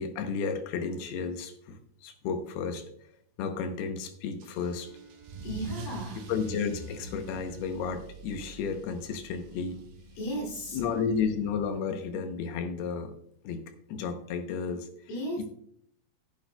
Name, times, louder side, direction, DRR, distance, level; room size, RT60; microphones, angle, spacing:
voice 1, 0.0-2.8 3.4-4.9 6.3-9.8 10.7-13.1 13.4-13.6 13.9-14.9 15.4-15.5, left 6 dB, 85° left, 7 dB, 2.9 m, -32 dB
Car / Engine starting / Accelerating revving vroom, 4.4-11.6, right 3 dB, 70° right, 2.6 m, -44 dB
Bowed string instrument, 4.7-9.5, right 5 dB, 35° left, 5.1 m, -57 dB
voice 2, 5.4-6.2 10.2-10.8 15.1-15.4, equal, 65° left, -1 dB, 4.3 m, -35 dB
15.0 x 9.1 x 2.2 m, 0.69 s
omnidirectional pair, 4.5 m